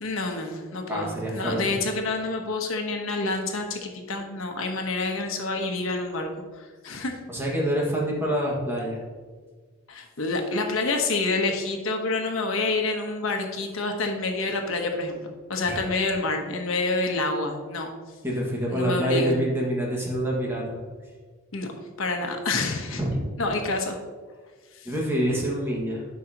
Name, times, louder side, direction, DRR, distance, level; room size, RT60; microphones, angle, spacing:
voice 1, 0.0-7.2 9.9-17.9 18.7-19.4 21.5-21.7 22.0-23.0 23.4-24.0 24.7-24.9, left 3 dB, 85° left, 3 dB, 1.1 m, -28 dB
voice 2, 0.9-1.7 7.3-9.0 15.6-15.8 18.2-20.8 23.0-23.2 24.9-26.1, equal, 10° right, -3 dB, 1.7 m, -26 dB
11.5 x 5.7 x 2.9 m, 1.5 s
head